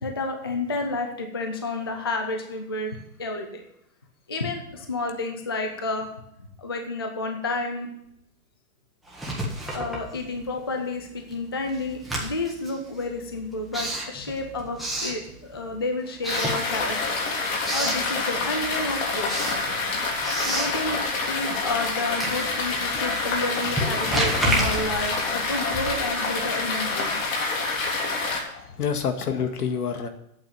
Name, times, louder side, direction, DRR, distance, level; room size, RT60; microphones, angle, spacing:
voice 1, 0.0-3.6 4.3-6.1 6.6-7.9 9.7-17.2 17.7-19.5 20.4-21.0 21.3-27.2, left 2 dB, 20° left, 4 dB, 0.3 m, -30 dB
Writing, 9.1-10.7 11.0-15.8 16.2-17.1 17.4-18.1 18.5-26.2, right 1 dB, ahead, 1.5 m, -31 dB
sound 1, 16.3-28.4, left 3 dB, 60° left, 3.3 m, -27 dB
voice 2, 28.0-30.1, left 6 dB, 85° left, 7 dB, 1.9 m, -29 dB
8.6 x 7.0 x 8.7 m, 0.77 s
hypercardioid pair, 160°, 45 cm